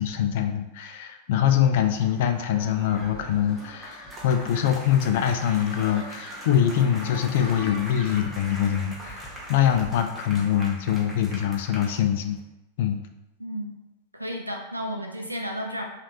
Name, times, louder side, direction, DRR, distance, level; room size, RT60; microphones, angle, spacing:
voice 1, 0.0-12.4 12.8-13.0, left 9 dB, 55° left, 6 dB, 0.3 m, -24 dB
sound 1, 1.4-12.4, equal, 15° right, 0.7 m, -43 dB
sound 2, 2.7-10.0, left 1 dB, 20° left, 0.8 m, -44 dB
voice 2, 13.4-13.7 14.1-15.9, equal, 85° right, 1 dB, 0.4 m, -32 dB
3.1 x 2.4 x 2.8 m, 0.94 s
figure-of-eight pair, 90°, 0 cm